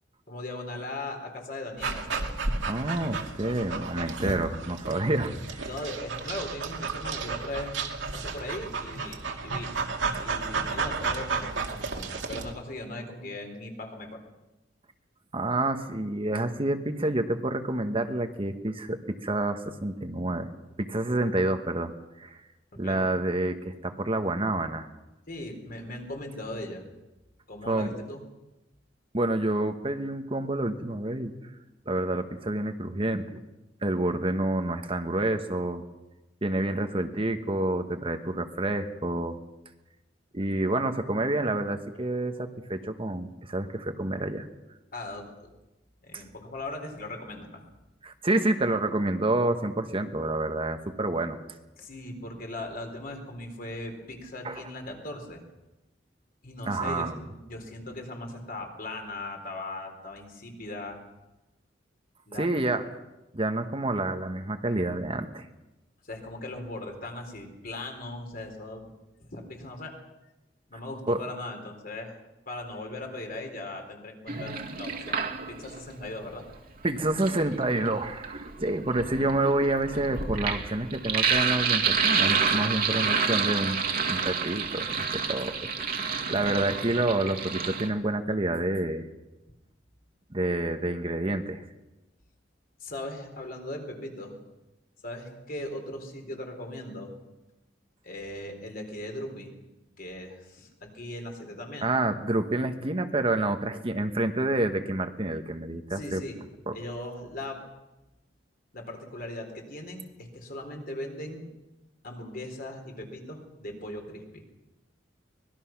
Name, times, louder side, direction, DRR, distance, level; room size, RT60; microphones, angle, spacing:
voice 1, 0.3-2.3 5.6-7.8 8.1-9.7 10.1-14.2 22.8-23.0 25.3-26.8 27.5-28.2 44.9-45.5 46.0-47.6 51.8-55.4 56.4-61.0 62.3-62.5 66.1-68.9 69.2-70.0 70.7-72.2 72.5-75.2 75.5-76.4 92.8-94.3 95.0-97.1 98.0-99.5 100.0-101.9 105.9-106.4 106.7-107.6 108.7-111.4 112.0-114.4, left 1 dB, 50° left, 3 dB, 4.1 m, -39 dB
Dog, 1.8-12.5, right 4 dB, 70° right, 2.3 m, -33 dB
voice 2, 2.7-5.7 10.1-10.2 15.3-20.5 20.8-21.9 22.2-22.4 22.8-24.9 27.7-27.9 29.1-31.3 31.9-33.2 33.8-35.8 36.4-39.4 40.3-44.5 46.1-46.2 48.0-51.4 54.4-54.6 56.7-57.2 62.4-62.8 63.3-65.5 71.1-71.2 76.8-83.8 84.1-85.7 86.0-89.1 90.3-91.6 101.8-106.2 106.7-106.8, right 2 dB, 30° right, 7 dB, 1.2 m, -28 dB
Sink (filling or washing), 74.3-75.8 76.9-87.9, right 5 dB, 50° right, 2.0 m, -29 dB
24.5 x 20.0 x 6.0 m, 0.99 s
head